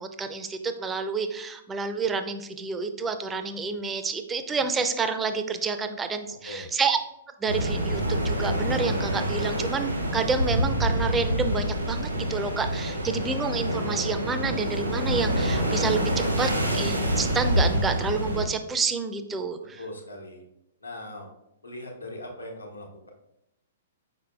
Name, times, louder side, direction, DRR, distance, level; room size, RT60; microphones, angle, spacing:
voice 1, 0.0-7.0 7.4-19.8, right 4 dB, 15° right, 8 dB, 0.4 m, -29 dB
sound 1, 7.5-18.4, equal, 85° right, 1.0 m, -26 dB
voice 2, 19.8-20.4 20.8-21.3 21.6-23.1, left 1 dB, 85° left, 0 dB, 1.0 m, -40 dB
4.8 x 4.5 x 2.3 m, 0.83 s
figure-of-eight pair, 110°, 0 cm